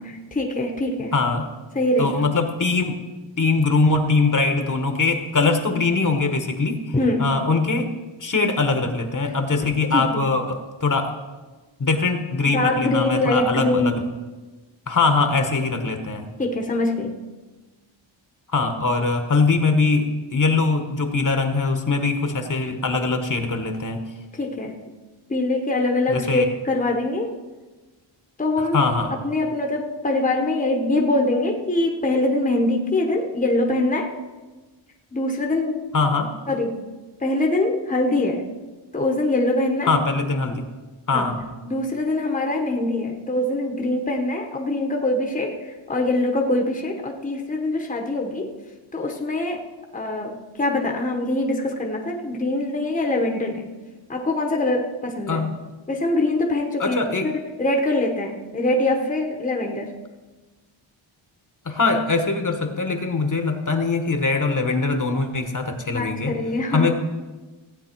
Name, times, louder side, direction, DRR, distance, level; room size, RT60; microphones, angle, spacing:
voice 1, 0.0-1.1 1.7-2.3 6.9-7.3 9.9-10.3 12.4-14.0 16.4-17.2 24.3-24.7 25.3-27.3 28.4-34.1 35.1-35.8 36.5-36.8 37.2-38.4 38.9-39.9 41.1-41.3 41.7-48.5 48.9-49.6 49.9-53.7 54.1-55.4 55.9-57.0 57.2-59.9 65.9-66.9, left 2 dB, 15° left, 2 dB, 1.0 m, -23 dB
voice 2, 1.1-1.5 2.0-3.0 3.4-6.8 7.2-7.9 8.2-11.1 11.8-14.0 14.9-16.3 18.5-24.0 26.1-26.5 28.7-29.1 35.9-36.3 39.9-40.6 41.1-41.4 55.3-55.5 56.8-57.3 61.6-66.4 66.7-67.0, left 3 dB, 40° left, 6 dB, 1.1 m, -22 dB
15.5 x 9.0 x 4.5 m, 1.2 s
wide cardioid pair, 150°, 48 cm